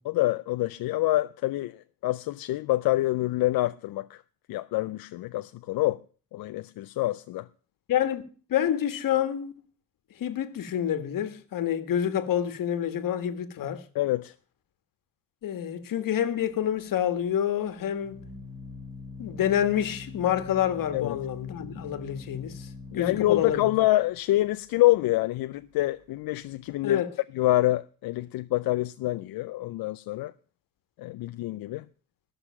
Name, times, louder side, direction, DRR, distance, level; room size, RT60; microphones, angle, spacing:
voice 1, 0.0-4.2 4.5-6.0 6.3-7.5 13.9-14.3 20.9-21.2 22.9-27.0 27.3-30.3 31.0-31.9, left 17 dB, 85° left, 0.5 m, -26 dB
voice 2, 7.9-8.2 8.5-9.5 10.2-13.8 15.4-18.2 19.2-22.7 22.9-23.7 26.8-27.1, left 10 dB, 65° left, 1.5 m, -28 dB
Organ, 16.4-26.7, left 4 dB, 70° right, 4.3 m, -44 dB
13.5 x 6.4 x 8.6 m
cardioid pair, 125°, 35 cm